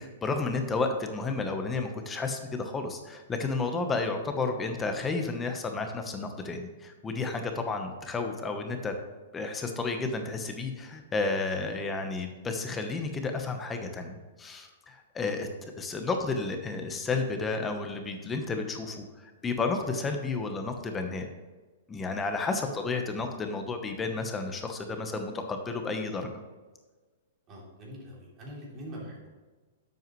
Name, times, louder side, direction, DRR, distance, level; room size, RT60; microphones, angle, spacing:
voice 1, 0.0-8.9 9.3-21.3 21.9-26.3, left 3 dB, 10° left, 5 dB, 1.0 m, -32 dB
voice 2, 27.5-29.3, equal, 25° right, -4 dB, 3.1 m, -43 dB
10.5 x 7.9 x 3.1 m, 1.3 s
hypercardioid pair, 155°, 0 cm